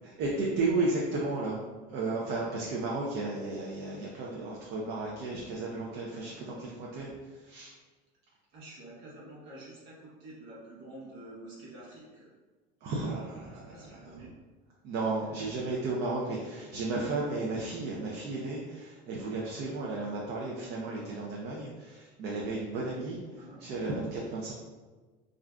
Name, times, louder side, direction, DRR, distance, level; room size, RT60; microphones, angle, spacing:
voice 1, 0.0-1.6 1.9-7.8 12.8-14.2 14.8-24.5, right 3 dB, 55° right, -3 dB, 0.6 m, -34 dB
voice 2, 8.5-12.3 13.5-14.3 15.2-15.9 23.3-23.6, right 1 dB, 70° right, -6 dB, 1.0 m, -49 dB
2.5 x 2.2 x 3.6 m, 1.3 s
supercardioid pair, 115°, 20 cm